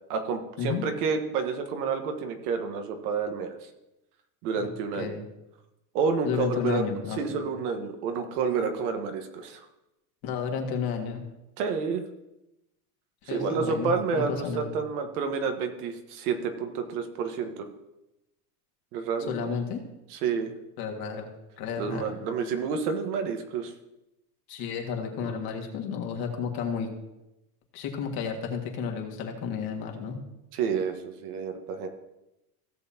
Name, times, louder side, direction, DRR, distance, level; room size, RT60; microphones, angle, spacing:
voice 1, 0.0-3.7 4.4-5.2 5.9-9.6 11.6-12.0 13.2-17.7 18.9-19.5 20.1-20.5 21.8-23.7 25.2-25.4 30.5-31.9, right 5 dB, 75° right, 6 dB, 1.5 m, -29 dB
voice 2, 4.6-5.2 6.2-7.4 10.2-11.3 13.3-14.7 19.3-19.8 20.8-21.3 21.6-22.2 24.5-26.9 27.7-30.2, left 6 dB, 50° left, 2 dB, 2.0 m, -32 dB
16.0 x 6.9 x 2.9 m, 0.93 s
supercardioid pair, 135°, 46 cm